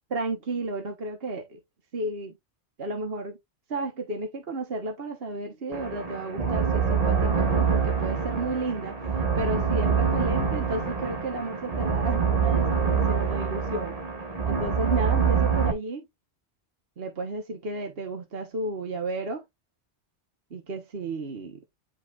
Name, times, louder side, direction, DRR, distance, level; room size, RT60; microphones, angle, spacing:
voice 1, 0.1-1.6 1.9-2.3 2.8-3.4 3.7-9.0 9.3-14.0 14.4-16.0 17.0-19.4 20.5-21.6, right 2 dB, 60° right, 1.5 m, -33 dB
sound 1, 5.7-15.7, right 6 dB, 35° right, 1.5 m, -25 dB
10.5 x 4.8 x 2.4 m
omnidirectional pair, 1.2 m